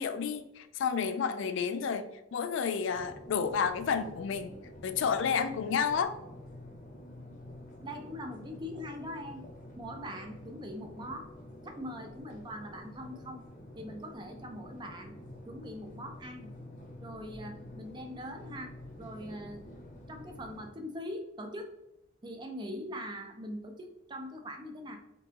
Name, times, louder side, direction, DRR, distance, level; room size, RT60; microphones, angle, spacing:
voice 1, 0.0-4.5 4.8-6.1, left 6 dB, 70° left, 11 dB, 0.3 m, -31 dB
sound 1, 2.9-20.7, left 1 dB, 40° left, 0.7 m, -48 dB
voice 2, 7.8-9.5 9.8-11.3 11.6-13.4 13.8-15.2 15.5-16.5 17.0-19.6 20.1-21.7 22.2-25.0, equal, 20° right, 4 dB, 0.4 m, -42 dB
3.7 x 3.7 x 2.8 m, 0.92 s
head